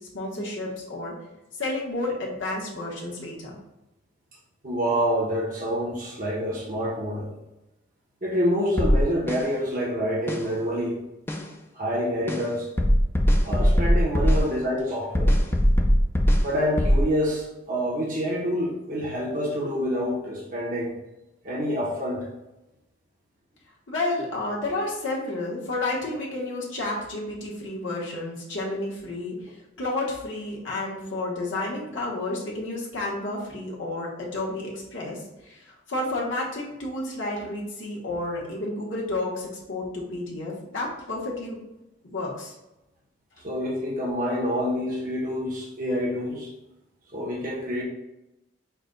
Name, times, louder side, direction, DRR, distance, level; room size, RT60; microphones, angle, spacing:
voice 1, 0.1-1.1 1.5-3.6 23.9-41.6 42.0-42.5, left 2 dB, 80° left, -4 dB, 1.2 m, -31 dB
voice 2, 4.6-7.3 8.2-11.0 11.7-12.7 13.4-15.4 16.4-20.9 21.4-22.3 43.4-46.5 47.1-47.8, equal, 45° right, -4 dB, 0.9 m, -27 dB
sound 1, 8.8-9.4 10.3-10.4 11.3-11.4 12.3-12.4 12.8-14.4 15.1-16.5 16.8-17.1, equal, 10° left, 0.3 m, -20 dB
5.8 x 2.2 x 3.8 m, 0.94 s
head